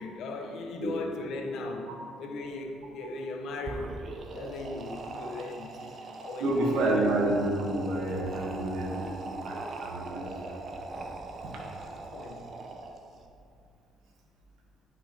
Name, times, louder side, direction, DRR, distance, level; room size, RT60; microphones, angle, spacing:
voice 1, 0.0-3.9 4.3-7.2 12.1-12.5, left 3 dB, 70° left, 3 dB, 0.8 m, -38 dB
sound 1, 3.6-13.2, right 3 dB, 45° right, 0.7 m, -41 dB
voice 2, 6.4-10.3 10.6-10.8 11.4-11.5, right 2 dB, 85° right, -1 dB, 1.3 m, -29 dB
10.5 x 6.0 x 2.8 m, 2.5 s
cardioid pair, 105°, 0 cm